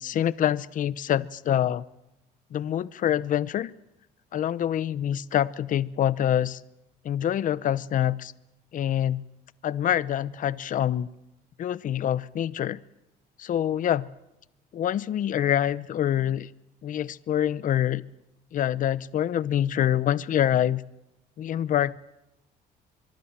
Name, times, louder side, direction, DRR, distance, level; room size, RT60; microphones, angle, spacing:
voice 1, 0.0-1.8 2.5-3.7 4.3-6.6 7.0-8.3 8.7-9.2 9.6-11.1 11.6-12.8 13.4-14.1 14.7-16.5 16.8-18.0 18.5-20.8 21.4-22.0, left 10 dB, 50° left, 18 dB, 0.8 m, -25 dB
24.0 x 23.5 x 7.5 m, 0.92 s
cardioid pair, 110°, 17 cm